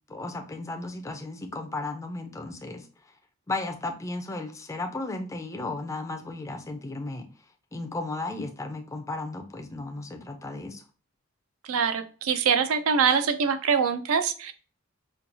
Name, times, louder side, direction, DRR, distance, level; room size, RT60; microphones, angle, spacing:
voice 1, 0.1-2.8 3.5-7.3 7.7-10.8, left 2 dB, 15° left, 4 dB, 0.4 m, -34 dB
voice 2, 11.6-14.5, right 6 dB, 75° right, 9 dB, 0.4 m, -24 dB
4.4 x 2.3 x 2.6 m, 0.38 s
head